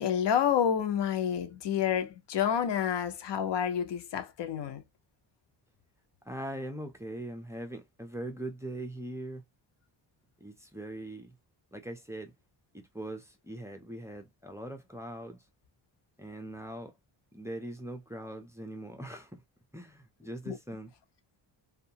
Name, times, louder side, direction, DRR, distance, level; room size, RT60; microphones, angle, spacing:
voice 1, 0.0-4.8 20.5-20.6, left 9 dB, 75° left, 0.6 m, -29 dB
voice 2, 6.3-9.4 10.4-11.3 11.7-12.3 12.7-15.4 16.2-16.9 17.3-19.3 19.7-20.9, right 1 dB, 5° right, 0.5 m, -41 dB
2.7 x 2.3 x 2.7 m
wide cardioid pair, 120°, 42 cm